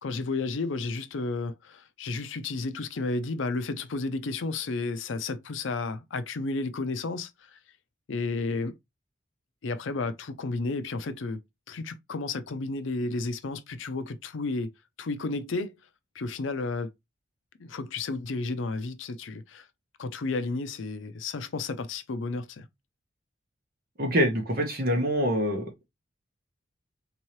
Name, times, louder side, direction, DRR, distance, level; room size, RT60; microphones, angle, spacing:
voice 1, 0.0-7.6 8.1-8.8 9.6-11.4 11.7-14.7 15.0-15.8 16.1-16.9 17.6-19.7 20.0-22.6, left 3 dB, 80° left, 0.5 m, -32 dB
voice 2, 24.0-25.7, equal, 50° right, 1.1 m, -25 dB
3.6 x 2.9 x 3.0 m
head